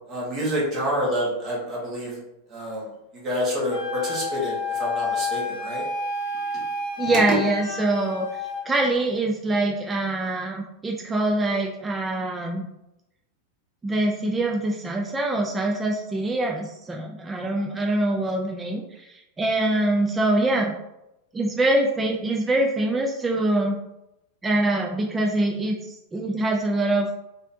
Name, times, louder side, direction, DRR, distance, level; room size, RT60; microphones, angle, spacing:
voice 1, 0.1-2.2 2.5-2.8 3.2-5.8, equal, 25° right, -5 dB, 1.3 m, -27 dB
Wind instrument woodwind instrument, 3.7-8.7, left 3 dB, 45° left, 0.8 m, -30 dB
voice 2, 7.0-8.3 8.7-12.7 13.8-19.1 19.4-20.7 21.3-23.8 24.4-27.2, right 2 dB, 10° right, 0 dB, 0.3 m, -24 dB
4.2 x 2.7 x 2.6 m, 0.88 s
supercardioid pair, 155°, 0 cm